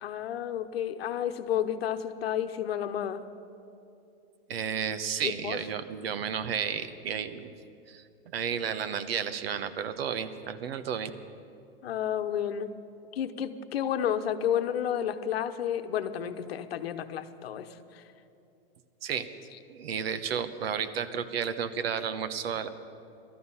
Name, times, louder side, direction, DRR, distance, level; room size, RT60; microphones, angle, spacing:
voice 1, 0.0-3.2 5.2-5.6 11.8-12.7 13.1-17.7, left 9 dB, 75° left, 9 dB, 1.0 m, -31 dB
voice 2, 4.5-7.5 7.9-8.0 8.3-11.1 19.0-19.3 19.7-22.7, right 7 dB, 75° right, 11 dB, 1.1 m, -32 dB
19.0 x 13.5 x 5.6 m, 2.7 s
supercardioid pair, 175°, 31 cm